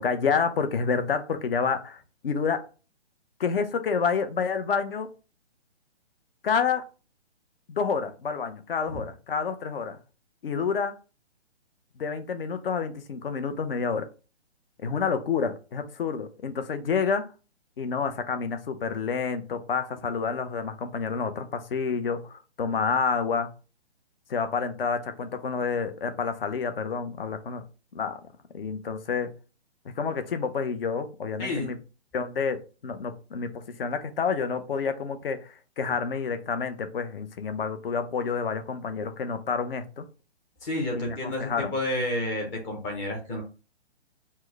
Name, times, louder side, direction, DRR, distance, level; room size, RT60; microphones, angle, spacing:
voice 1, 0.0-2.6 3.4-5.1 6.4-6.9 7.7-10.0 10.4-11.0 12.0-14.1 14.8-17.2 17.8-23.5 24.3-27.6 27.9-28.2 28.5-29.3 29.9-31.8 32.1-40.0 40.9-41.7, left 5 dB, 55° left, 0.8 m, -29 dB
voice 2, 31.4-31.7 40.6-43.4, left 1 dB, 10° left, 0.5 m, -30 dB
4.5 x 2.1 x 4.5 m
hypercardioid pair, 150°, 33 cm